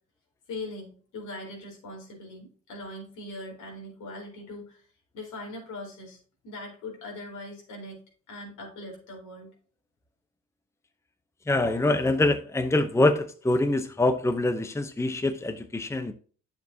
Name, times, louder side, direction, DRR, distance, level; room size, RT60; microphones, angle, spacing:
voice 1, 0.5-4.9 5.1-6.2 6.4-8.0 8.3-9.5, left 2 dB, 80° left, 0 dB, 4.2 m, -40 dB
voice 2, 11.5-16.1, left 2 dB, 10° left, 9 dB, 0.8 m, -25 dB
9.2 x 7.0 x 2.8 m, 0.40 s
cardioid pair, 90°, 30 cm